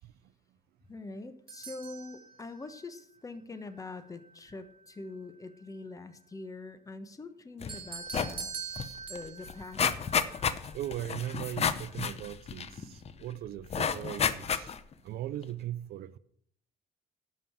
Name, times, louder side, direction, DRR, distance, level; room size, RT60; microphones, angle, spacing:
voice 1, 0.9-8.5 9.1-10.2, left 3 dB, 20° left, 1.2 m, -44 dB
sound 1, 1.5-2.8 7.7-11.0, right 6 dB, 30° right, 2.0 m, -43 dB
sound 2, 7.6-7.8 8.1-8.4 8.8-8.9 9.2-13.1 13.7-14.9 15.4-15.5, left 7 dB, 40° left, 0.8 m, -31 dB
voice 2, 10.7-14.7 15.0-16.2, right 12 dB, 65° right, 0.6 m, -39 dB
11.5 x 5.4 x 7.3 m
cardioid pair, 110°, 17 cm